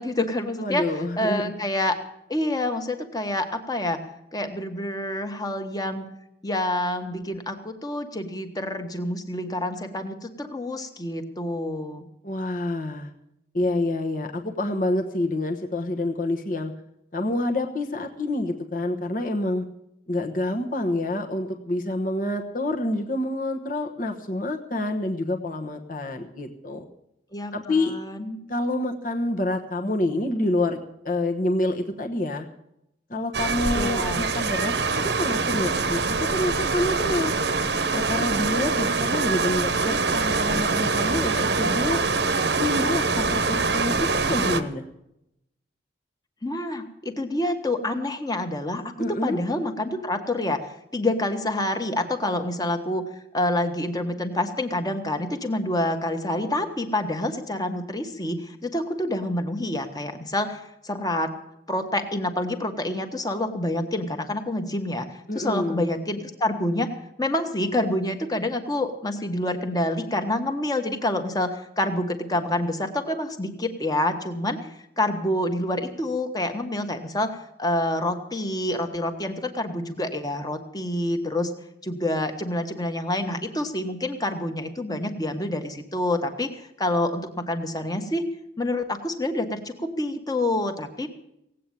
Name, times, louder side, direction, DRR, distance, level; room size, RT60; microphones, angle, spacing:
voice 1, 0.0-0.9 1.2-2.0 2.3-4.0 4.3-6.0 6.4-12.1 27.3-28.4 33.7-34.3 46.4-48.8 49.2-50.7 50.9-53.0 53.3-61.3 61.7-74.7 75.0-81.5 81.8-88.3 88.6-91.1, left 1 dB, 20° left, 6 dB, 1.4 m, -27 dB
voice 2, 0.6-1.5 12.2-13.1 13.5-16.7 17.1-19.6 20.1-26.9 27.5-27.9 28.5-30.8 31.0-32.5 33.1-37.4 37.9-42.0 42.6-44.9 49.0-49.4 65.3-65.9, left 1 dB, 45° left, 3 dB, 1.2 m, -27 dB
sound 1, 33.3-44.6, right 4 dB, 65° right, 1.0 m, -24 dB
17.5 x 8.5 x 9.1 m, 0.82 s
head